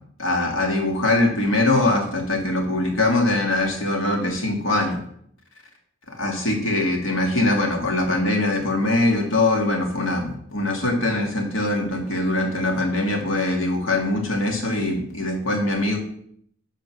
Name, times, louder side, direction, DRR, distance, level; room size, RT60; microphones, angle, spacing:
voice 1, 0.2-5.0 6.2-16.0, left 2 dB, 80° left, 1 dB, 2.2 m, -22 dB
9.2 x 4.5 x 6.2 m, 0.67 s
head